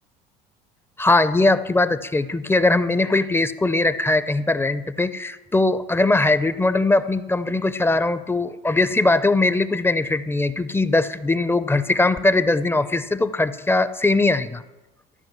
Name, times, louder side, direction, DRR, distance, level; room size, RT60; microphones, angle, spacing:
voice 1, 1.0-14.6, left 2 dB, 10° left, 13 dB, 0.5 m, -20 dB
13.5 x 5.2 x 7.3 m, 1.1 s
supercardioid pair, 95°, 20 cm